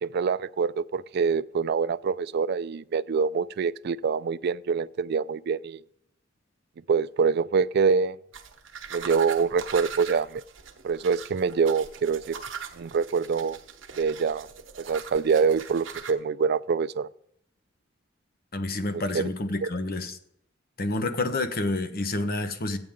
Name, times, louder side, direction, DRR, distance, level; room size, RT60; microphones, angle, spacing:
voice 1, 0.0-5.8 6.9-8.2 8.9-10.4 10.8-12.4 12.8-13.6 14.0-14.5 14.8-17.1 19.1-19.2 19.6-19.7, right 5 dB, 55° right, 0.3 m, -25 dB
sound 1, 8.3-16.1, right 6 dB, 75° right, 1.0 m, -41 dB
voice 2, 18.5-20.2 20.8-22.8, left 2 dB, 50° left, 1.0 m, -29 dB
14.0 x 8.9 x 3.7 m
head